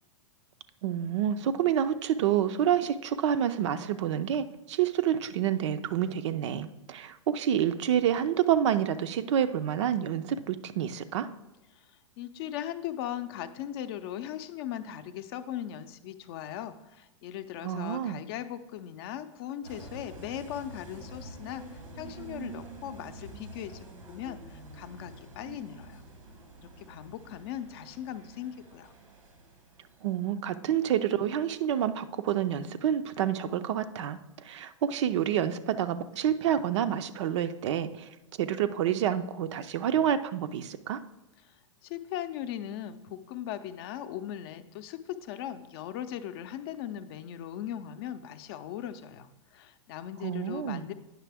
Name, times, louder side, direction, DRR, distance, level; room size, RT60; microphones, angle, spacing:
voice 1, 0.8-11.3 17.6-18.2 30.0-41.0 50.2-50.8, right 10 dB, 65° right, 11 dB, 0.5 m, -28 dB
voice 2, 12.2-26.0 26.6-28.9 41.4-41.5 41.8-50.9, left 10 dB, 50° left, 10 dB, 0.5 m, -39 dB
sound 1, 19.6-30.3, right 2 dB, 90° right, 1.2 m, -47 dB
8.8 x 5.8 x 3.4 m, 0.99 s
hypercardioid pair, 110°, 16 cm